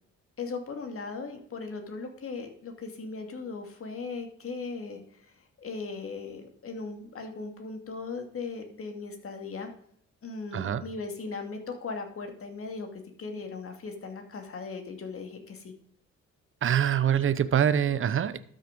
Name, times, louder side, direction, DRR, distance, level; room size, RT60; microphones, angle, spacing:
voice 1, 0.4-9.7 10.2-15.7, left 4 dB, 45° left, 5 dB, 2.5 m, -38 dB
voice 2, 16.6-18.4, right 9 dB, 45° right, 14 dB, 0.8 m, -24 dB
12.5 x 6.3 x 5.2 m, 0.67 s
cardioid pair, 90°, 30 cm